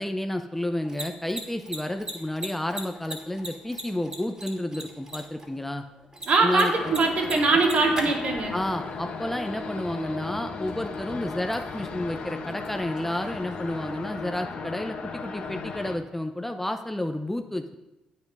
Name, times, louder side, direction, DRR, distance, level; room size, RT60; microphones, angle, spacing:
voice 1, 0.0-5.8 6.4-6.9 8.5-17.8, left 1 dB, 10° left, 6 dB, 0.8 m, -31 dB
Mechanisms, 0.7-14.3, right 1 dB, 25° right, 2.7 m, -43 dB
voice 2, 6.3-8.5, right 3 dB, 55° right, 0 dB, 2.6 m, -22 dB
sound 1, 6.7-16.0, left 4 dB, 55° left, 1.5 m, -36 dB
9.1 x 7.3 x 5.5 m, 0.99 s
hypercardioid pair, 55°, 3 cm